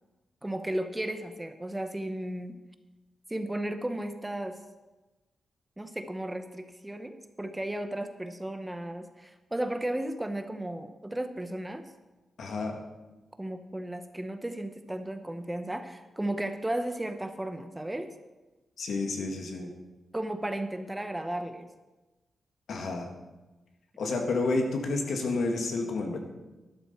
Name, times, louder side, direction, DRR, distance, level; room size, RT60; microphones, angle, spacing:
voice 1, 0.4-2.6 3.3-4.6 5.8-11.8 13.4-18.1 20.1-21.7, right 1 dB, 10° right, 8 dB, 0.7 m, -34 dB
voice 2, 12.4-12.8 18.8-19.7 22.7-23.1 24.0-26.2, left 3 dB, 75° left, 3 dB, 1.9 m, -30 dB
12.5 x 12.0 x 4.4 m, 1.1 s
wide cardioid pair, 130°, 0 cm